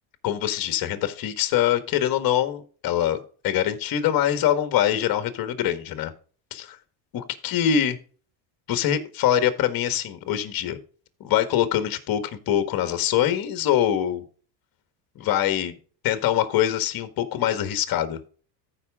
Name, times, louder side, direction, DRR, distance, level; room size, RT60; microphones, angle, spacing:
voice 1, 0.2-6.1 6.5-6.8 7.1-8.0 8.7-10.8 11.2-14.2 15.1-15.8 16.0-18.2, left 10 dB, 45° left, 10 dB, 1.7 m, -24 dB
14.0 x 5.3 x 3.6 m, 0.41 s
supercardioid pair, 115°, 49 cm